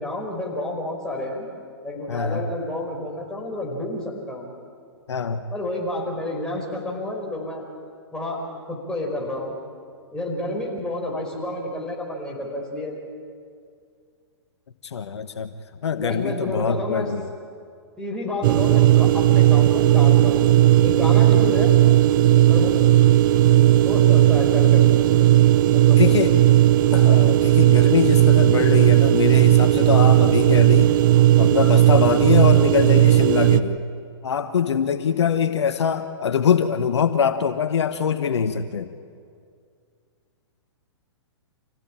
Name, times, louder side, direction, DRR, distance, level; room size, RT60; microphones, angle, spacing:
voice 1, 0.0-1.5 1.8-4.5 5.5-7.6 8.1-8.4 8.7-9.5 10.1-12.9 15.9-17.1 18.0-21.7 22.5-22.7 23.4-25.2 25.7-26.5, left 1 dB, 5° left, -3 dB, 5.3 m, -30 dB
voice 2, 2.1-2.4 5.1-5.4 14.8-15.5 15.8-17.2 22.6-22.7 25.9-26.3 26.9-31.0 31.4-33.8 34.2-38.9, left 7 dB, 75° left, 9 dB, 1.2 m, -23 dB
sound 1, 18.4-33.6, right 13 dB, 45° right, 1.0 m, -15 dB
26.5 x 16.5 x 8.9 m, 2.3 s
hypercardioid pair, 125°, 15 cm